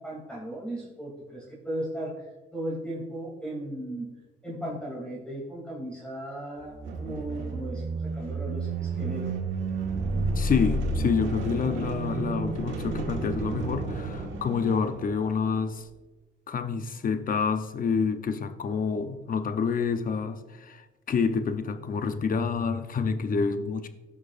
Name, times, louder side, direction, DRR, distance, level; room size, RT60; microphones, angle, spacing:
voice 1, 0.0-2.2 2.5-4.1 4.4-9.3, right 1 dB, 5° left, -4 dB, 2.9 m, -36 dB
sound 1, 6.6-15.4, right 3 dB, 80° right, 1.5 m, -31 dB
voice 2, 10.4-15.9 16.5-23.9, left 5 dB, 45° left, 9 dB, 0.7 m, -28 dB
16.0 x 6.3 x 2.5 m, 1.2 s
cardioid pair, 90°, 20 cm